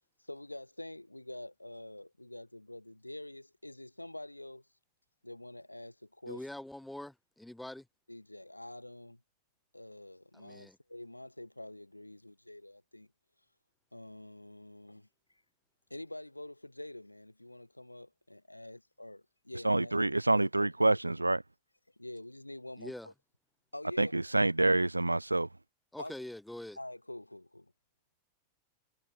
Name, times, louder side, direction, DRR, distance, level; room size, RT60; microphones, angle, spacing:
voice 1, 0.2-4.6 5.2-6.4 8.1-9.2 9.7-13.1 13.9-15.1 15.9-20.5 20.9-21.0 22.0-23.1 23.7-24.1 26.0-26.1 26.8-27.7, left 1 dB, 85° left, 3.5 m, -46 dB
voice 2, 6.3-7.9 10.3-10.8 22.8-23.1 25.9-26.8, left 1 dB, 5° left, 6.1 m, -44 dB
voice 3, 19.6-21.4 24.0-25.5, right 2 dB, 85° right, 1.7 m, -27 dB
figure-of-eight pair, 90°, 0 cm